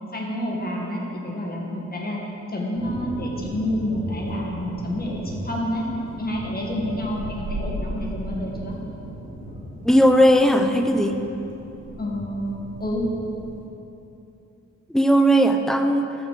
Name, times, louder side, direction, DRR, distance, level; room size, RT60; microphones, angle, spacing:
voice 1, 0.1-2.2 2.5-5.8 6.2-8.8 12.0-13.1, equal, 30° left, -2 dB, 1.8 m, -28 dB
sound 1, 2.7-13.7, equal, 30° right, 2.4 m, -36 dB
voice 2, 9.8-11.2 14.9-16.1, equal, ahead, 6 dB, 0.6 m, -17 dB
13.5 x 5.8 x 4.8 m, 2.9 s
cardioid pair, 105°, 29 cm